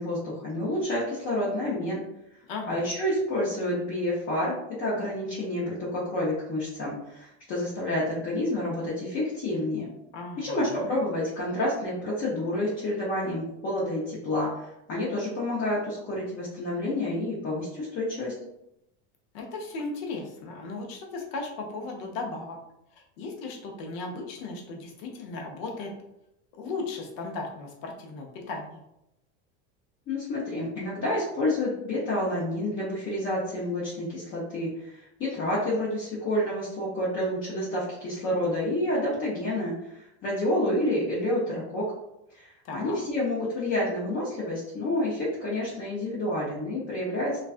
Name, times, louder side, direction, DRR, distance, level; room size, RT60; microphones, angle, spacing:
voice 1, 0.0-2.0 2.7-9.9 10.4-18.3 30.1-41.8 42.3-47.4, left 1 dB, 40° left, -7 dB, 0.8 m, -29 dB
voice 2, 2.5-2.8 10.1-10.9 19.3-22.6 23.0-25.9 26.6-28.8 42.6-43.0, left 3 dB, 70° left, 1 dB, 0.7 m, -36 dB
2.4 x 2.2 x 2.4 m, 0.84 s
supercardioid pair, 135°, 32 cm